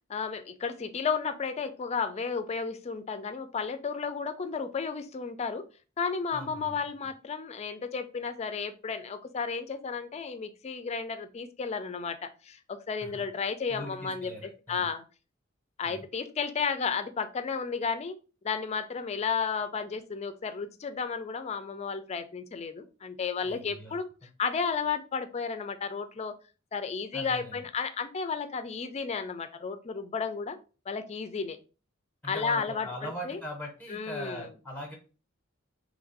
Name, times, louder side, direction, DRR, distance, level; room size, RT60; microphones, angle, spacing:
voice 1, 0.1-5.6 6.0-15.0 15.8-18.2 18.4-24.1 24.4-26.3 26.7-30.6 30.9-31.6 32.2-33.4 33.9-34.5, left 5 dB, 30° left, 10 dB, 0.4 m, -33 dB
voice 2, 6.3-6.8 13.0-13.2 13.7-14.9 15.8-16.0 23.4-23.9 27.1-27.6 32.2-35.0, equal, 10° left, 1 dB, 0.8 m, -41 dB
3.1 x 2.5 x 3.9 m, 0.34 s
head